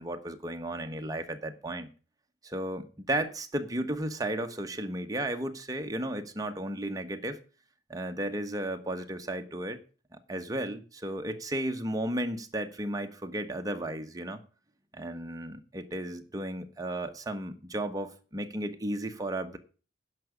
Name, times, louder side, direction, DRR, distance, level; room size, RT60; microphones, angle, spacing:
voice 1, 0.0-1.9 2.4-7.4 7.9-9.8 10.1-14.4 14.9-19.6, right 1 dB, 20° right, 1.2 m, -34 dB
10.5 x 6.1 x 8.1 m
head